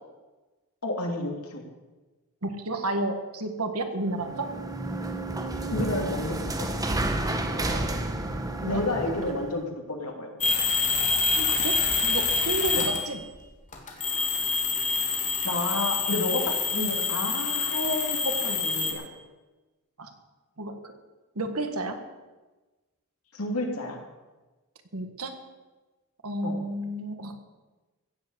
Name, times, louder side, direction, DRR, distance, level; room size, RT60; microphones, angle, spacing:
voice 1, 0.8-1.6 5.7-6.9 8.7-10.3 10.6-10.7 12.7-12.9 15.4-19.0 23.3-24.0 26.4-26.6, left 2 dB, 75° left, 2 dB, 2.8 m, -31 dB
voice 2, 2.4-4.5 7.6-7.9 8.6-8.8 11.4-11.8 12.0-13.2 16.8-16.9 20.0-20.1 20.6-20.9 21.3-22.0 24.9-25.3 26.2-27.3, right 2 dB, 75° right, 7 dB, 1.8 m, -31 dB
sound 1, 4.1-9.6, right 1 dB, 15° right, 1.1 m, -31 dB
sound 2, 10.4-13.2 13.7-18.9, left 4 dB, 35° left, 2.5 m, -26 dB
16.0 x 7.7 x 8.1 m, 1.2 s
head